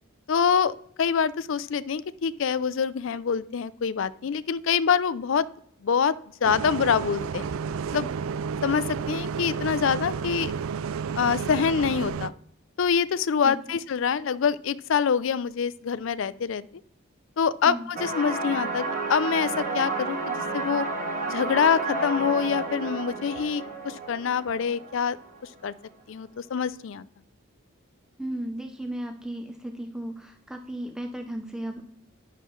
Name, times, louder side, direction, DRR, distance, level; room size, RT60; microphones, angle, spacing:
voice 1, 0.3-5.5 5.8-6.1 6.4-7.5 7.9-8.1 8.6-10.5 11.2-12.3 12.8-16.6 17.4-20.9 21.3-25.2 25.6-25.7 26.1-27.0, left 6 dB, 65° left, 17 dB, 0.4 m, -25 dB
Bus, 6.4-12.3, right 6 dB, 75° right, 0.3 m, -31 dB
voice 2, 13.4-13.8 17.6-17.9 28.2-31.9, right 1 dB, 5° right, 4 dB, 0.5 m, -35 dB
sound 1, 18.0-25.5, right 3 dB, 40° right, 1.6 m, -31 dB
10.0 x 6.7 x 3.1 m, 0.68 s
head